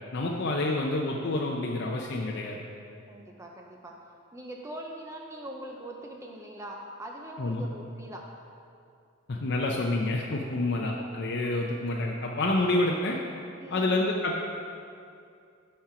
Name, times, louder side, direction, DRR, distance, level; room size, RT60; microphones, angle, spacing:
voice 1, 0.1-2.6 7.4-7.6 9.3-13.2 13.7-14.4, left 2 dB, 50° left, 0 dB, 0.6 m, -28 dB
voice 2, 3.1-4.0 4.3-8.3 11.4-11.7 13.6-14.1, right 1 dB, 15° right, 0 dB, 0.5 m, -43 dB
11.5 x 4.4 x 4.9 m, 2.4 s
head